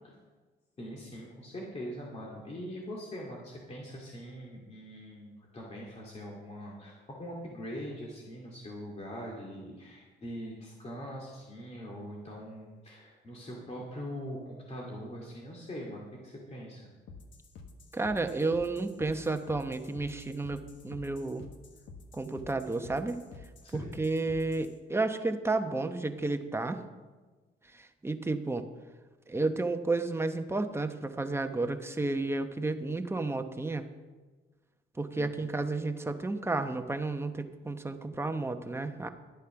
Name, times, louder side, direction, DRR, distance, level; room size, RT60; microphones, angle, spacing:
voice 1, 0.8-16.9 23.6-23.9 35.1-35.4, equal, 30° left, -3 dB, 2.3 m, -42 dB
sound 1, 17.1-24.7, left 4 dB, 70° left, 1.2 m, -50 dB
voice 2, 17.9-21.4 22.1-23.2 23.7-26.8 27.6-28.6 29.3-33.9 35.0-39.1, right 3 dB, 10° right, 7 dB, 0.9 m, -32 dB
12.0 x 8.1 x 5.9 m, 1.3 s
cardioid pair, 90°, 20 cm